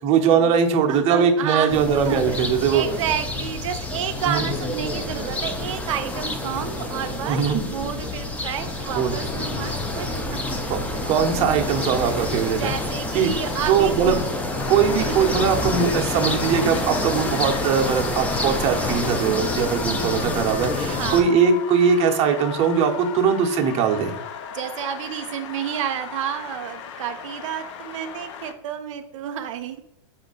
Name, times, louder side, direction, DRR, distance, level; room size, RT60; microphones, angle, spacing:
voice 1, 0.0-2.8 4.2-4.4 7.3-7.6 8.9-9.2 10.7-10.8 11.1-12.7 13.1-13.3 13.6-14.1 14.7-24.1, right 7 dB, 40° right, 3 dB, 0.6 m, -21 dB
voice 2, 0.9-1.7 2.1-2.4 2.7-10.4 10.7-10.8 11.9-14.2 15.0-15.1 19.2-19.4 21.0-21.3 24.5-29.8, right 9 dB, 85° right, 6 dB, 0.4 m, -30 dB
sound 1, 1.7-21.2, left 2 dB, 10° left, 0.4 m, -28 dB
sound 2, 14.6-28.5, left 8 dB, 65° left, 0.5 m, -37 dB
4.4 x 2.4 x 3.8 m, 0.80 s
supercardioid pair, 125°, 16 cm